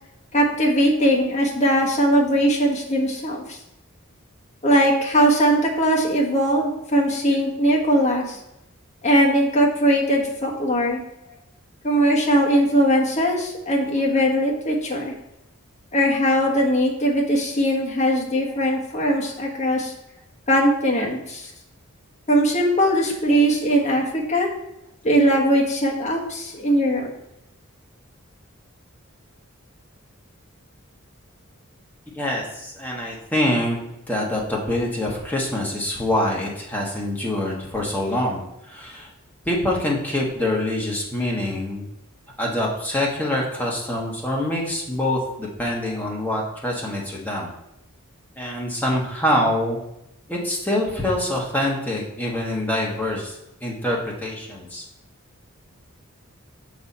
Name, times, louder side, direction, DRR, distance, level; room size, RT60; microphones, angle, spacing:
voice 1, 0.3-3.6 4.6-8.4 9.0-11.0 11.8-15.1 15.9-19.9 20.5-21.5 22.3-24.5 25.0-27.1, equal, 30° left, -2 dB, 1.2 m, -20 dB
voice 2, 32.1-33.8 34.1-39.1 39.4-41.9 42.4-47.5 48.4-49.8 50.3-54.8, left 1 dB, 10° left, -3 dB, 1.1 m, -25 dB
6.7 x 4.1 x 4.2 m, 0.85 s
head